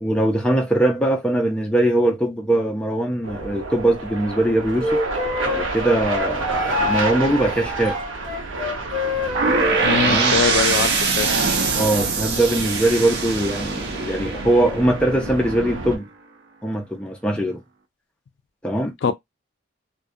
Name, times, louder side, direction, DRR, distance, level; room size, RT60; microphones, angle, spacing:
voice 1, 0.0-5.0 5.4-8.0 10.0-10.4 11.7-16.1 16.6-17.6 18.6-19.1, right 1 dB, 5° left, 0.4 m, -21 dB
sound 1, 3.2-16.0, right 2 dB, 90° right, 0.7 m, -29 dB
Wind instrument woodwind instrument, 4.8-9.9, left 2 dB, 30° right, 0.9 m, -27 dB
sound 2, 9.3-15.2, right 4 dB, 55° right, 0.6 m, -23 dB
voice 2, 9.8-11.4 19.0-19.1, left 6 dB, 65° left, 0.4 m, -22 dB
2.2 x 2.2 x 2.6 m
head